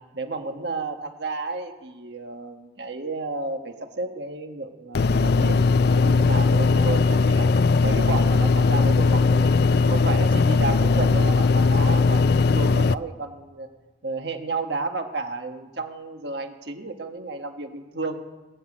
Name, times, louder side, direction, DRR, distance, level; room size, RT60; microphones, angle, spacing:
voice 1, 0.1-7.5 7.8-9.5 9.8-13.7 14.0-18.2, right 3 dB, 65° right, 5 dB, 1.5 m, -32 dB
sound 1, 4.9-12.9, left 4 dB, 60° left, 0.4 m, -19 dB
20.5 x 7.4 x 8.6 m, 1.1 s
head